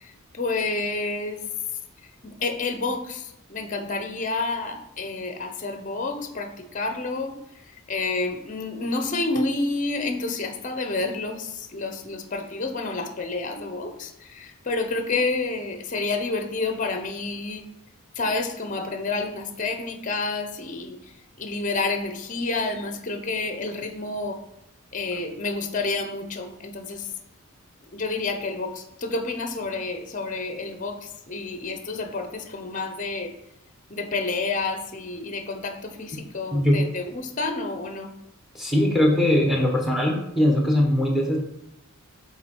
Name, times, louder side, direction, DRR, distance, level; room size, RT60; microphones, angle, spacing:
voice 1, 0.0-1.4 2.2-7.4 7.9-17.7 18.2-21.0 21.4-24.4 24.9-27.1 27.9-33.3 33.9-38.1, left 3 dB, 35° left, 6 dB, 0.7 m, -29 dB
voice 2, 38.5-41.4, left 1 dB, ahead, 0 dB, 1.3 m, -21 dB
7.2 x 4.0 x 4.4 m, 0.82 s
head